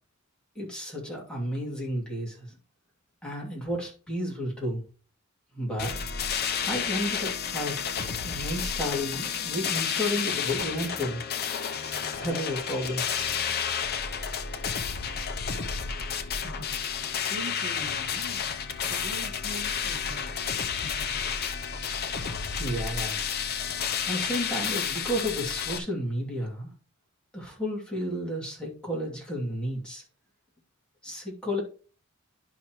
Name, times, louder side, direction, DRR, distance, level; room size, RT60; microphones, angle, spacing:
voice 1, 0.5-2.6 3.2-4.8 5.5-6.0 6.7-7.8 8.2-11.2 12.2-13.0 22.6-23.3 24.1-26.7 27.3-30.0 31.0-31.6, equal, 5° left, -3 dB, 2.7 m, -32 dB
sound 1, 5.8-25.8, left 7 dB, 50° left, 0.7 m, -31 dB
voice 2, 16.4-16.8 17.3-18.4 18.8-20.3 20.7-21.3, equal, 70° right, 4 dB, 2.3 m, -42 dB
10.5 x 5.6 x 3.1 m, 0.38 s
head